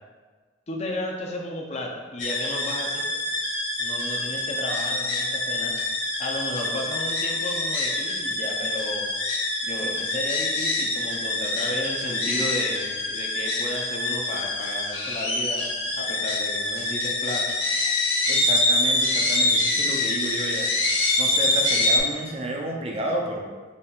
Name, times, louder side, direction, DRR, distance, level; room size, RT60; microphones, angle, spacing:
voice 1, 0.7-3.1 3.8-5.7 6.2-9.1 9.6-15.7 15.9-17.5, left 1 dB, 35° left, 0 dB, 0.6 m, -33 dB
sound 1, 2.2-22.0, left 2 dB, 70° left, 1.1 m, -25 dB
voice 2, 18.3-20.7 21.2-23.5, right 1 dB, 30° right, 0 dB, 0.5 m, -31 dB
4.2 x 3.3 x 3.7 m, 1.4 s
head